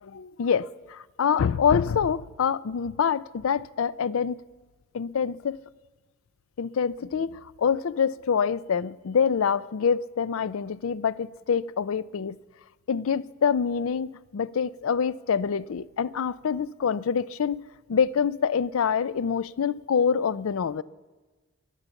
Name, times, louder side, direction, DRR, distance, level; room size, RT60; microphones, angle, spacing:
voice 1, 0.0-4.4 4.9-5.6 6.6-12.4 12.9-17.6 17.9-20.8, left 6 dB, 80° left, 0.4 m, -26 dB
22.5 x 8.3 x 7.0 m
head